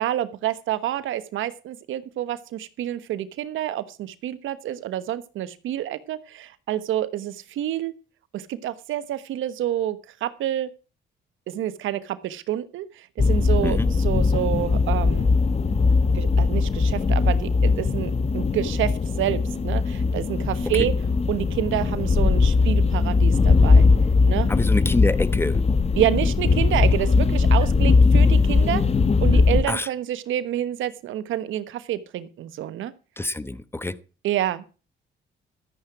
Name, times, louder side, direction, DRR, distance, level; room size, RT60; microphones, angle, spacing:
voice 1, 0.0-7.9 8.3-10.7 11.5-15.3 16.1-20.9 21.3-23.9 24.2-24.5 26.0-28.8 29.2-32.9 34.2-34.8, right 12 dB, 85° right, 14 dB, 1.2 m, -28 dB
sound 1, 13.2-29.6, left 4 dB, 30° left, 1.2 m, -20 dB
voice 2, 24.5-25.6 29.7-29.9 33.2-33.9, left 2 dB, 10° left, 15 dB, 1.1 m, -26 dB
13.5 x 10.0 x 4.8 m, 0.34 s
cardioid pair, 90°, 20 cm